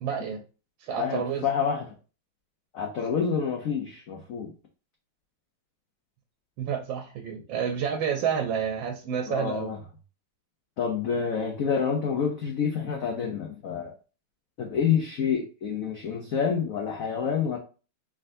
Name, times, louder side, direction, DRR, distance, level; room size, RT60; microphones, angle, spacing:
voice 1, 0.0-0.4 0.8-1.4 6.6-9.7, right 7 dB, 75° right, 4 dB, 1.4 m, -29 dB
voice 2, 1.0-1.9 2.7-4.5 9.3-9.8 10.8-13.9 14.6-17.6, left 7 dB, 80° left, 1 dB, 0.7 m, -28 dB
4.4 x 3.7 x 2.6 m, 0.35 s
omnidirectional pair, 2.3 m